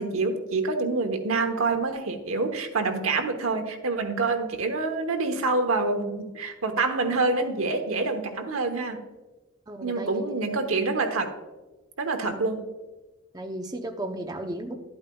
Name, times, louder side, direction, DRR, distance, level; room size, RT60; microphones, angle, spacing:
voice 1, 0.0-9.0 9.8-11.3 12.0-12.6, right 3 dB, 90° right, 6 dB, 1.0 m, -26 dB
voice 2, 9.7-10.4 12.3-12.4 13.3-14.8, right 1 dB, 20° right, 4 dB, 0.7 m, -35 dB
11.5 x 8.6 x 2.3 m, 1.2 s
head